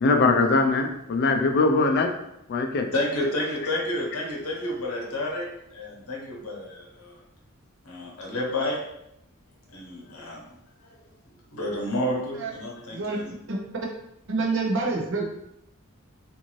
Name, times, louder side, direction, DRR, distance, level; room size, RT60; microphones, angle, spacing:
voice 1, 0.0-2.1 2.5-2.9, left 3 dB, 50° left, 4 dB, 0.4 m, -21 dB
voice 2, 2.9-7.2 7.9-8.8 9.7-10.4 11.5-13.3, left 1 dB, 80° left, -1 dB, 0.9 m, -30 dB
voice 3, 14.3-15.3, right 3 dB, 60° right, 0 dB, 0.6 m, -26 dB
2.6 x 2.6 x 3.0 m, 0.81 s
head